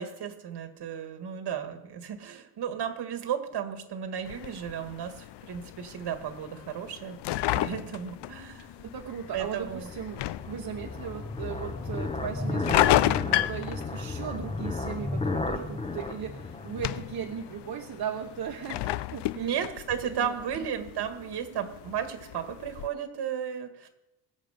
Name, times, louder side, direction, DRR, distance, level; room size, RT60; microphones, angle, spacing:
voice 1, 0.0-7.2 7.5-8.7 9.3-9.9 19.4-23.9, right 8 dB, 75° right, 7 dB, 1.9 m, -34 dB
sound 1, 4.3-22.9, left 15 dB, 85° left, 0.6 m, -33 dB
sound 2, 8.0-17.6, left 3 dB, 15° left, 0.8 m, -34 dB
voice 2, 8.8-19.7 20.0-20.7, right 8 dB, 60° right, 2 dB, 1.1 m, -37 dB
22.5 x 7.6 x 5.2 m, 0.94 s
cardioid pair, 140°, 41 cm